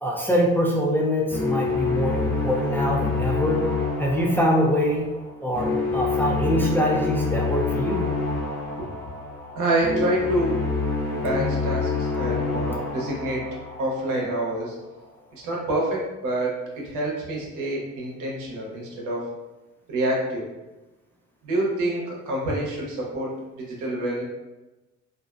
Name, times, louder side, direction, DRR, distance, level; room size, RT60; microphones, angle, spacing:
voice 1, 0.0-3.6 4.0-5.1 5.4-8.0, equal, 5° left, -3 dB, 0.4 m, -24 dB
sound 1, 1.3-14.4, left 4 dB, 85° left, 0.5 m, -27 dB
voice 2, 9.6-10.6 11.1-13.4 13.8-14.8 15.3-19.2 19.9-20.5 21.4-24.2, right 1 dB, 85° right, -2 dB, 0.7 m, -27 dB
2.5 x 2.1 x 2.4 m, 1.1 s
cardioid pair, 90°, 30 cm